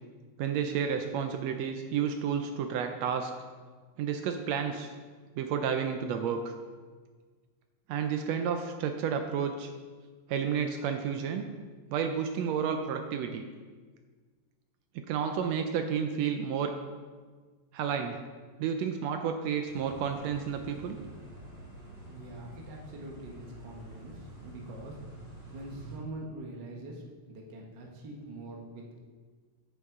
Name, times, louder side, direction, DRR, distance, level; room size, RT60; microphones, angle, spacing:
voice 1, 0.4-3.3 4.0-4.9 5.4-6.5 7.9-9.7 10.3-11.5 11.9-13.4 15.1-16.7 17.7-18.2 18.6-21.0, right 7 dB, 80° right, 6 dB, 1.5 m, -31 dB
sound 1, 19.7-26.0, right 1 dB, 20° right, 2.5 m, -48 dB
voice 2, 22.1-25.0 25.5-29.0, right 1 dB, 55° right, -1 dB, 1.2 m, -44 dB
9.2 x 9.0 x 3.6 m, 1.5 s
omnidirectional pair, 3.5 m